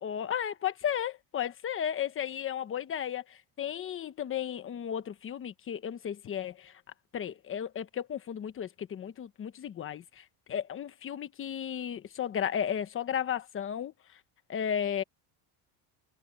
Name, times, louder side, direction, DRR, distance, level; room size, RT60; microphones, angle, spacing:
voice 1, 0.0-6.7 7.1-13.9 14.5-15.0, left 9 dB, 25° left, 1.1 m, -34 dB
cardioid pair, 170°, 50 cm